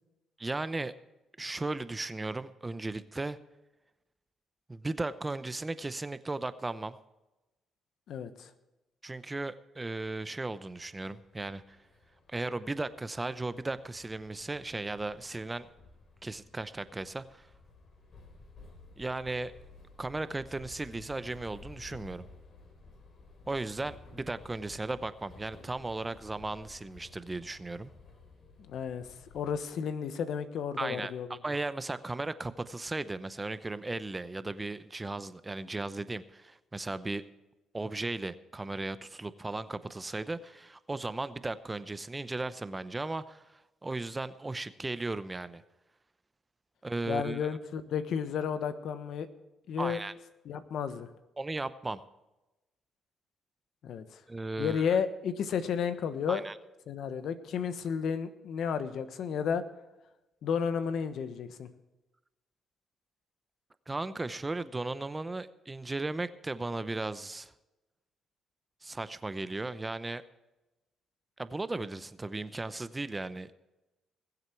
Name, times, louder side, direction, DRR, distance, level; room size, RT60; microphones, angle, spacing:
voice 1, 0.4-0.9 1.4-3.4 4.7-7.0 9.0-11.8 12.3-15.7 16.2-17.5 19.0-19.5 20.0-22.2 23.5-27.9 30.8-37.2 37.7-45.6 46.8-47.5 49.8-50.1 51.4-52.0 54.3-55.0 56.3-56.6 63.9-67.5 68.8-70.2 71.4-73.5, right 2 dB, 20° right, 14 dB, 0.7 m, -36 dB
voice 2, 8.1-8.5 28.7-29.1 29.3-31.4 47.0-49.3 49.7-50.0 50.4-51.1 53.8-54.0 54.6-56.4 56.9-59.6 60.4-61.7, left 7 dB, 70° left, 11 dB, 1.2 m, -32 dB
sound 1, 10.8-29.6, left 3 dB, 55° left, 3.8 m, -55 dB
21.0 x 8.0 x 4.6 m, 1.0 s
cardioid pair, 90°, 0 cm